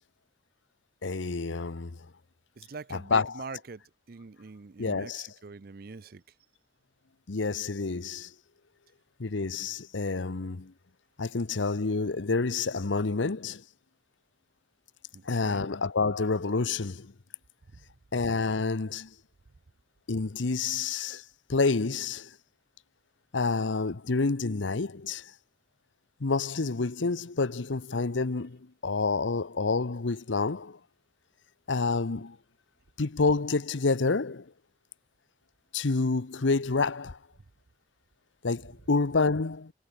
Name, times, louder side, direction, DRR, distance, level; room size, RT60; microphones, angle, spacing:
voice 1, 1.0-2.0 2.9-3.4 4.8-5.3 7.3-8.3 9.2-10.7 11.2-13.6 15.3-17.1 18.1-19.1 20.1-21.2 21.5-22.3 23.3-25.2 26.2-28.6 28.8-30.8 31.7-32.4 33.0-34.4 35.7-37.2 38.4-39.7, left 3 dB, 85° left, 0.9 m, -28 dB
voice 2, 2.6-3.8 4.1-6.2 15.1-15.7 32.2-32.3, right 4 dB, 50° right, 0.5 m, -44 dB
head